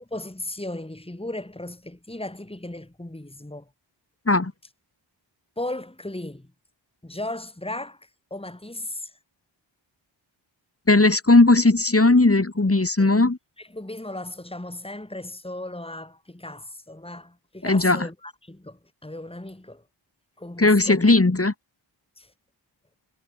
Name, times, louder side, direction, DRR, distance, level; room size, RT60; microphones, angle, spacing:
voice 1, 0.0-3.7 5.6-6.5 7.0-9.1 13.0-13.1 13.6-19.8 20.4-21.1 22.2-22.3, left 1 dB, 10° left, 3.9 m, -36 dB
voice 2, 10.9-13.4 17.6-18.1 20.6-21.5, left 2 dB, 30° left, 4.1 m, -17 dB
cardioid pair, 50°, 46 cm